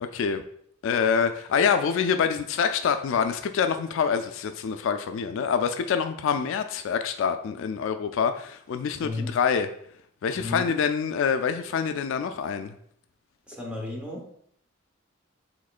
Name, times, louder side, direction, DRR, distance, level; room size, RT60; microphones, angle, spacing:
voice 1, 0.0-0.4 0.8-9.7 10.2-12.7, left 6 dB, 70° left, 8 dB, 0.3 m, -26 dB
voice 2, 9.0-9.4 10.3-10.7 13.5-14.3, left 2 dB, 5° right, -2 dB, 1.0 m, -33 dB
5.0 x 3.6 x 2.4 m, 0.65 s
head